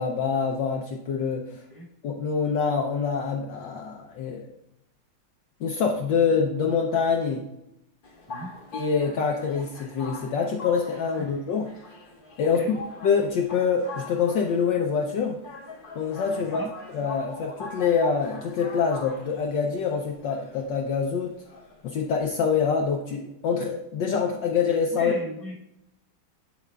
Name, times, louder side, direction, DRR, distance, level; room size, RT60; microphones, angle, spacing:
voice 1, 0.0-1.6 2.0-4.5 5.6-7.4 8.7-11.7 12.4-12.6 13.0-15.4 16.0-16.6 16.9-21.3 21.8-25.1, left 6 dB, 70° left, 1 dB, 1.2 m, -25 dB
voice 2, 1.5-1.9 8.3-8.5 11.2-11.3 12.4-12.7 16.4-16.7 24.9-25.5, equal, 10° right, -5 dB, 1.2 m, -37 dB
sound 1, 8.0-22.9, left 3 dB, 55° left, 0.5 m, -42 dB
7.7 x 7.1 x 2.2 m, 0.82 s
omnidirectional pair, 2.4 m